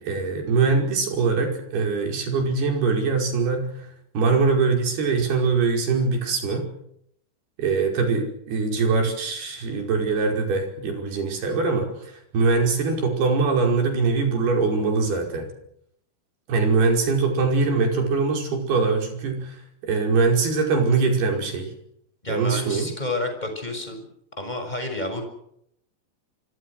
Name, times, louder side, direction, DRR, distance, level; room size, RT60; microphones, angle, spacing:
voice 1, 0.0-3.9 4.1-6.7 7.6-15.5 16.5-21.7 22.3-22.9, right 4 dB, 70° right, 3 dB, 7.2 m, -22 dB
voice 2, 22.2-24.1 24.4-25.2, left 2 dB, 10° left, 5 dB, 6.4 m, -30 dB
26.0 x 25.5 x 6.5 m, 0.72 s
omnidirectional pair, 4.7 m